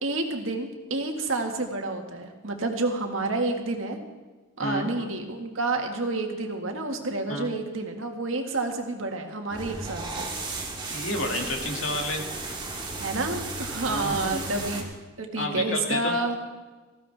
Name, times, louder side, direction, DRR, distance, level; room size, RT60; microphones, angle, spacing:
voice 1, 0.0-4.0 4.6-10.3 13.0-14.9 15.2-16.4, right 2 dB, 75° right, 3 dB, 1.8 m, -29 dB
voice 2, 4.6-5.1 7.3-7.5 10.9-12.3 13.9-14.4 15.3-16.2, left 2 dB, 80° left, 1 dB, 2.3 m, -31 dB
sound 1, 9.5-14.8, right 3 dB, 25° right, 2.1 m, -34 dB
19.0 x 15.0 x 3.5 m, 1.3 s
head